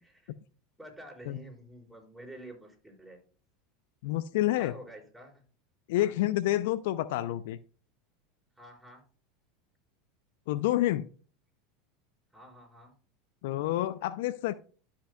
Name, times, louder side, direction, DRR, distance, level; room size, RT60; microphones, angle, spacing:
voice 1, 0.0-0.3 0.8-3.2 4.6-5.4 5.9-6.1 8.6-9.0 12.3-12.9, right 1 dB, 5° right, -1 dB, 4.4 m, -49 dB
voice 2, 4.0-4.7 5.9-7.6 10.5-11.1 13.4-14.5, left 14 dB, 70° left, 16 dB, 0.4 m, -28 dB
12.5 x 5.7 x 2.2 m, 0.39 s
hypercardioid pair, 90°, 0 cm